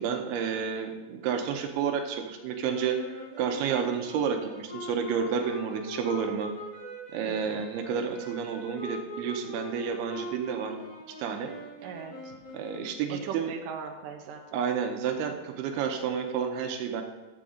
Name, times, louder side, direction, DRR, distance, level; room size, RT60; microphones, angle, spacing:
voice 1, 0.0-6.5 7.1-10.8 11.2-11.5 12.5-13.5 14.5-17.0, right 7 dB, 85° right, 4 dB, 2.8 m, -30 dB
sound 1, 2.6-13.1, equal, 40° left, 4.6 m, -42 dB
voice 2, 7.3-7.7 11.8-12.4 13.2-14.4, right 6 dB, 70° right, 1 dB, 2.4 m, -39 dB
12.0 x 7.8 x 3.8 m, 1.2 s
omnidirectional pair, 4.5 m